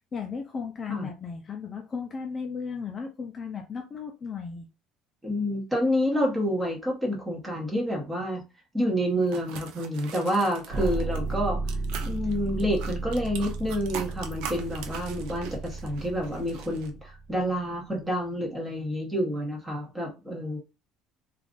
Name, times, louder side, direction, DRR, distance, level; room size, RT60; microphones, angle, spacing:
voice 1, 0.1-4.7, left 5 dB, 25° left, 3 dB, 0.4 m, -35 dB
voice 2, 5.2-8.4 8.7-11.6 12.0-20.6, equal, 10° right, -1 dB, 1.0 m, -28 dB
sound 1, 9.2-11.4 11.7-16.9, right 7 dB, 75° right, 0.5 m, -41 dB
sound 2, 10.7-17.6, right 3 dB, 40° right, 0.7 m, -34 dB
2.5 x 2.3 x 3.6 m, 0.29 s
cardioid pair, 160°, 0 cm